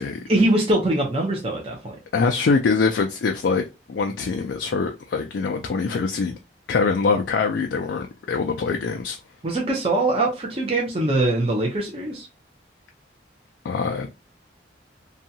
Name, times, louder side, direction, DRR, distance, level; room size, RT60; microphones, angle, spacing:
voice 1, 0.3-2.0 9.4-12.3, right 2 dB, 30° right, 0.6 m, -22 dB
voice 2, 2.1-6.4 6.7-9.2 13.6-14.1, left 4 dB, 65° left, 0.3 m, -23 dB
2.7 x 2.3 x 2.7 m
head